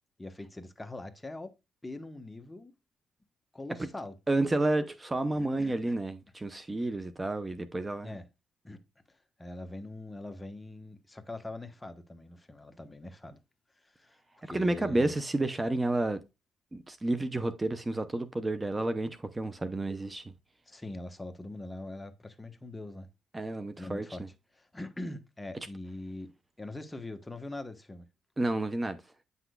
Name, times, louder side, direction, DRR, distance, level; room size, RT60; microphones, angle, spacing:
voice 1, 0.2-1.6 1.8-2.7 3.5-4.2 5.3-6.0 8.0-8.2 8.6-8.8 9.4-13.4 13.8-14.2 14.4-15.1 20.7-23.1 23.8-24.2 24.5-26.3 26.6-28.0, left 2 dB, 15° left, 1.0 m, -42 dB
voice 2, 4.3-8.1 14.5-16.2 16.7-20.3 23.3-24.3 28.4-29.0, right 2 dB, 20° right, 0.6 m, -30 dB
9.1 x 5.9 x 2.3 m
cardioid pair, 90°, 0 cm